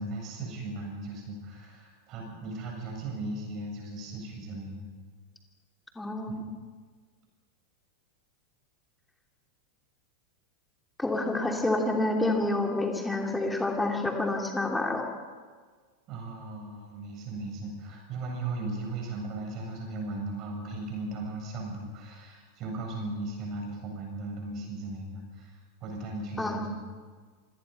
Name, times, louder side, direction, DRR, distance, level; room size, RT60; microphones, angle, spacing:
voice 1, 0.0-4.9 6.3-6.4 16.1-26.8, right 2 dB, 35° right, 0 dB, 7.8 m, -37 dB
voice 2, 6.0-6.4 11.0-15.0 26.4-26.6, left 2 dB, 5° left, 1 dB, 3.0 m, -28 dB
26.5 x 18.0 x 5.7 m, 1.5 s
figure-of-eight pair, 90°, 0 cm